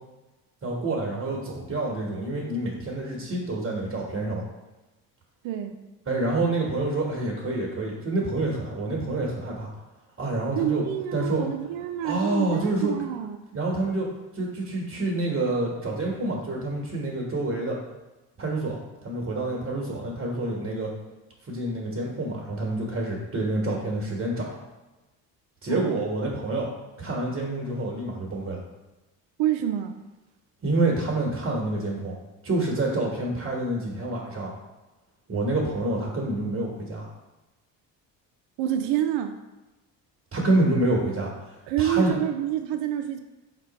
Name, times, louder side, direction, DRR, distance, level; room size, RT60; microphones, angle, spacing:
voice 1, 0.6-4.4 6.1-9.7 10.2-10.8 11.1-11.5 12.0-12.9 13.5-14.1 14.3-17.8 18.4-20.9 21.5-24.6 25.6-26.7 27.0-28.6 30.6-32.1 32.4-34.5 35.3-37.1 40.3-41.3 41.8-42.2, right 2 dB, 30° right, -2 dB, 1.2 m, -27 dB
voice 2, 5.4-5.8 10.5-13.4 25.7-26.0 29.4-30.0 38.6-39.4 41.7-43.2, right 11 dB, 65° right, 6 dB, 0.5 m, -27 dB
4.2 x 3.0 x 4.1 m, 1.1 s
hypercardioid pair, 60°, 49 cm